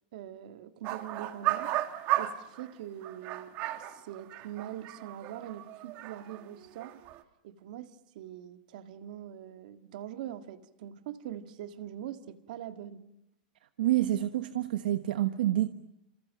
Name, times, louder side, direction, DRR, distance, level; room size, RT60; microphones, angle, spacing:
voice 1, 0.1-1.7 2.2-7.0 7.4-13.0, right 11 dB, 60° right, 1.9 m, -43 dB
sound 1, 0.8-2.7 3.0-6.5 6.8-7.2, right 14 dB, 35° right, 1.5 m, -34 dB
voice 2, 13.8-15.7, right 14 dB, 80° right, 1.2 m, -27 dB
29.0 x 28.0 x 6.3 m
supercardioid pair, 160°, 5 cm